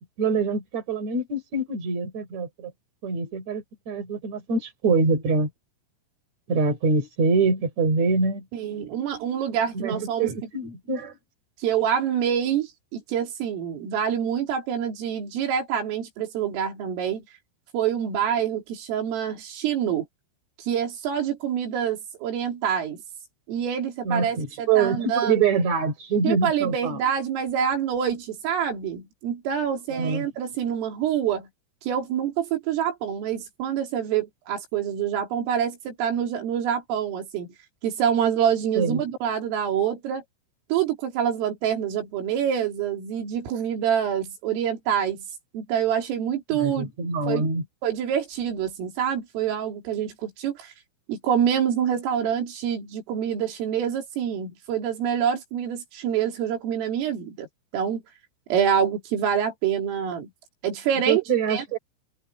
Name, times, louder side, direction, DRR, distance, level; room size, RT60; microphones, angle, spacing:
voice 1, 0.2-2.7 3.0-5.5 6.5-8.4 9.7-11.2 24.0-27.0 29.9-30.3 38.7-39.0 46.5-47.6 61.1-61.8, right 4 dB, 35° right, 5.4 m, -24 dB
voice 2, 8.5-10.3 11.6-17.2 17.7-20.1 20.6-23.0 23.5-25.4 26.2-31.5 31.8-37.5 37.8-40.2 40.7-45.3 45.5-46.9 47.3-47.5 47.8-50.7 51.1-57.5 57.7-58.0 58.5-60.3 60.6-61.2 61.5-61.8, right 8 dB, 80° right, 6.1 m, -26 dB
omnidirectional pair, 5.8 m